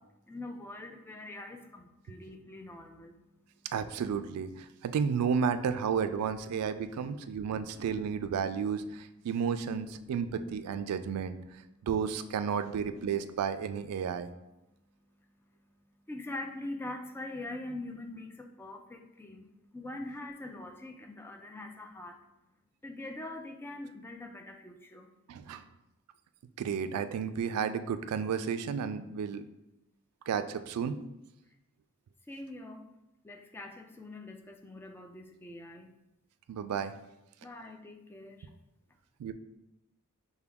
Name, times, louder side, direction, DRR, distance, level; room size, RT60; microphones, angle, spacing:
voice 1, 0.3-3.1 16.1-19.5 19.7-22.1 22.8-25.1 32.3-32.8 33.2-35.9 37.4-38.4, left 2 dB, 10° left, 3 dB, 0.3 m, -43 dB
voice 2, 3.7-11.4 11.8-14.3 25.3-25.6 26.6-29.4 30.3-30.9 36.5-36.9 39.2-39.3, right 6 dB, 90° right, 10 dB, 0.3 m, -32 dB
5.6 x 2.2 x 3.4 m, 0.93 s
head